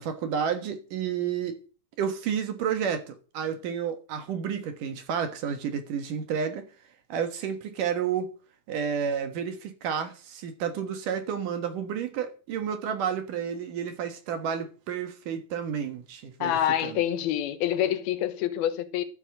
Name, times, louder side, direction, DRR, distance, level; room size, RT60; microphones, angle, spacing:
voice 1, 0.0-1.6 2.0-6.7 7.1-8.3 8.7-17.0, right 7 dB, 65° right, 2.8 m, -31 dB
voice 2, 16.4-19.0, left 11 dB, 75° left, 2.9 m, -26 dB
13.5 x 7.6 x 7.7 m
omnidirectional pair, 4.5 m